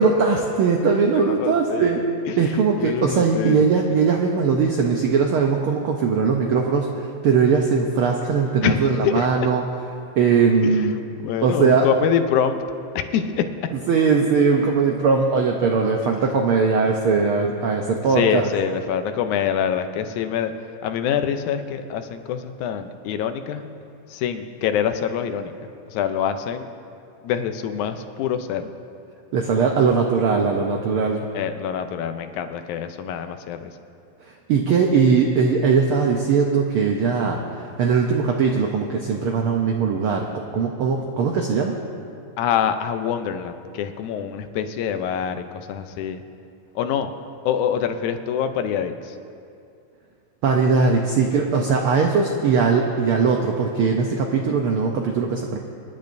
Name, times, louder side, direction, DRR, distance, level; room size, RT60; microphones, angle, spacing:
voice 1, 0.0-2.0 2.4-9.6 10.2-11.0 11.4-11.9 13.9-18.5 29.3-31.2 34.5-40.3 40.5-41.7 50.4-55.6, right 5 dB, 85° right, 1 dB, 1.2 m, -20 dB
voice 2, 1.1-2.4 2.8-3.6 8.6-9.5 10.6-10.9 11.2-12.6 13.0-13.4 16.2-16.3 18.1-20.5 20.8-23.7 24.1-26.7 27.2-28.7 31.3-33.7 42.4-46.2 46.8-47.1 47.5-49.2, left 8 dB, 85° left, 8 dB, 2.2 m, -25 dB
26.5 x 10.5 x 2.6 m, 2.5 s
omnidirectional pair, 3.4 m